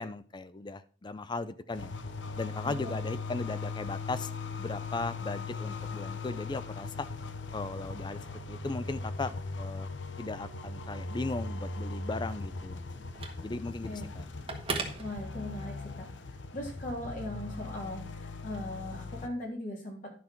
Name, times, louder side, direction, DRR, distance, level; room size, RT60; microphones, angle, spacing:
voice 1, 0.0-1.9 2.4-4.3 4.6-7.1 7.5-8.2 8.5-12.8 13.4-14.3, left 3 dB, 25° left, 14 dB, 0.5 m, -37 dB
sound 1, 1.7-19.3, left 3 dB, 80° left, 0.8 m, -39 dB
Telephone, 11.1-15.9, right 4 dB, 30° right, 1.5 m, -42 dB
voice 2, 15.0-16.1 16.5-20.1, left 1 dB, 50° left, -1 dB, 3.5 m, -39 dB
11.0 x 5.8 x 4.5 m, 0.41 s
head